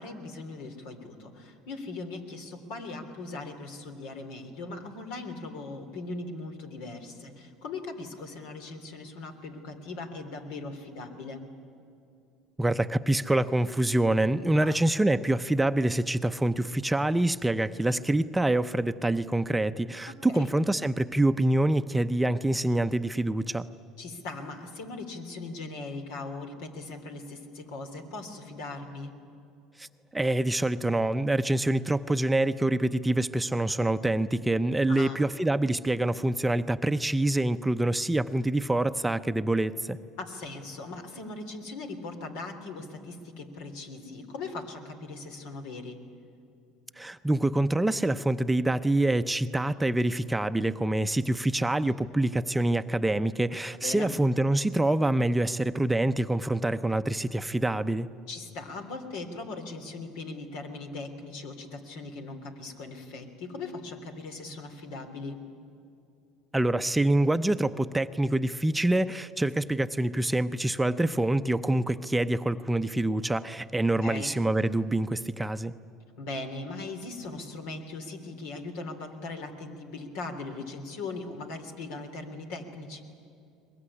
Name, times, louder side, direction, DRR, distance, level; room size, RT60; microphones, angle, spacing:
voice 1, 0.0-11.5 14.6-14.8 20.3-20.5 24.0-29.1 34.9-35.2 40.2-46.0 53.8-54.2 58.3-65.4 74.0-74.3 76.2-83.0, left 3 dB, 80° left, 6 dB, 3.2 m, -39 dB
voice 2, 12.6-23.7 29.8-29.9 30.1-40.0 47.0-58.1 66.5-75.7, right 1 dB, 10° right, 10 dB, 0.7 m, -26 dB
22.5 x 21.0 x 9.9 m, 2.7 s
supercardioid pair, 95°, 0 cm